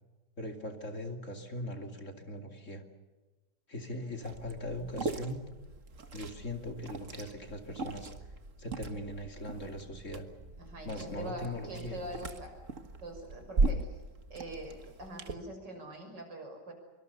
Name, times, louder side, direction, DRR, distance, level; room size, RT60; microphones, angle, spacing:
voice 1, 0.4-2.8 3.7-5.4 6.1-8.1 8.6-10.3 10.8-12.0, left 1 dB, 45° left, 5 dB, 2.9 m, -40 dB
Liquid, 4.2-15.3, right 3 dB, 45° right, 1.9 m, -38 dB
voice 2, 10.6-12.5 13.0-14.0 14.3-16.7, right 1 dB, 75° right, 4 dB, 6.8 m, -43 dB
25.0 x 25.0 x 7.0 m, 1.2 s
omnidirectional pair, 1.9 m